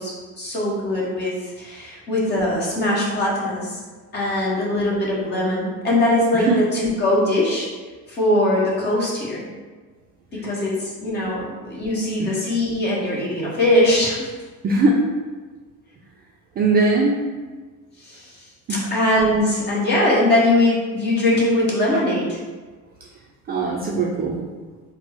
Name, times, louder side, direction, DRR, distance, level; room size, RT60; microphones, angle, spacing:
voice 1, 0.0-3.8 4.1-7.7 8.1-9.4 10.3-14.3 18.0-18.3 18.9-22.4, left 1 dB, 30° left, -4 dB, 1.0 m, -21 dB
voice 2, 14.6-15.0 16.6-17.2 18.7-18.8 23.5-24.4, right 3 dB, 30° right, -2 dB, 0.4 m, -20 dB
4.2 x 2.1 x 4.4 m, 1.4 s
cardioid pair, 160°, 32 cm